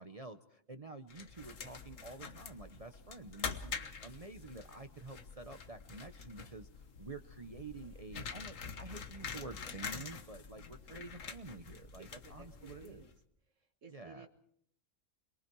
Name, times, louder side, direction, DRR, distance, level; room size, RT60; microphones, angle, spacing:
voice 1, 0.0-13.1 13.9-14.3, right 3 dB, 30° right, 7 dB, 0.9 m, -49 dB
sound 1, 1.1-13.2, left 5 dB, 85° left, 1.7 m, -46 dB
voice 2, 12.0-13.1 13.5-14.3, right 5 dB, 75° right, 3 dB, 2.0 m, -57 dB
28.0 x 22.5 x 4.7 m, 0.64 s
omnidirectional pair, 1.3 m